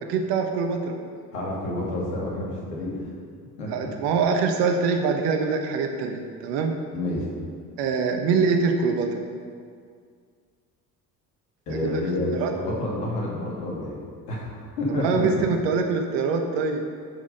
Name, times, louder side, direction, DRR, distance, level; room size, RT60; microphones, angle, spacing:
voice 1, 0.0-1.0 3.7-6.7 7.8-9.2 11.7-12.0 12.3-12.5 14.9-16.8, right 5 dB, 60° right, 4 dB, 1.2 m, -24 dB
voice 2, 1.3-3.0 3.6-3.7 6.9-7.2 11.7-14.0 14.3-15.5, left 1 dB, 75° left, -4 dB, 2.5 m, -29 dB
9.6 x 6.4 x 5.4 m, 2.1 s
figure-of-eight pair, 50°, 48 cm